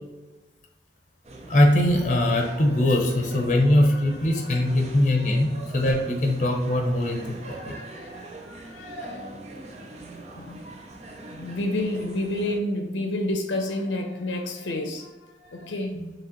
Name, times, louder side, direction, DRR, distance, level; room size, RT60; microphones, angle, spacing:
sound 1, 1.2-12.6, right 2 dB, 35° right, 0.5 m, -43 dB
voice 1, 1.5-5.5 5.7-7.7 15.9-16.1, left 1 dB, 40° left, 2 dB, 0.7 m, -21 dB
voice 2, 3.6-4.0 4.3-4.8 7.4-9.4 10.4-10.7 11.3-16.1, left 1 dB, 80° left, 3 dB, 0.6 m, -31 dB
4.9 x 3.0 x 3.0 m, 1.2 s
head